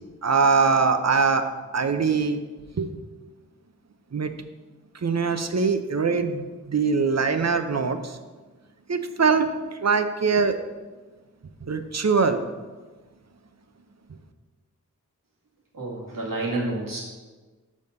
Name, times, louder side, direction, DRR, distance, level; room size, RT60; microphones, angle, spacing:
voice 1, 0.2-1.5 1.7-2.4 2.8-2.9 4.1-4.3 5.0-8.1 8.9-9.5 9.8-10.6 11.7-12.4, right 5 dB, 55° right, 8 dB, 0.7 m, -22 dB
voice 2, 15.7-17.0, right 2 dB, 90° right, -4 dB, 2.0 m, -29 dB
6.3 x 5.4 x 6.6 m, 1.3 s
wide cardioid pair, 65°, 32 cm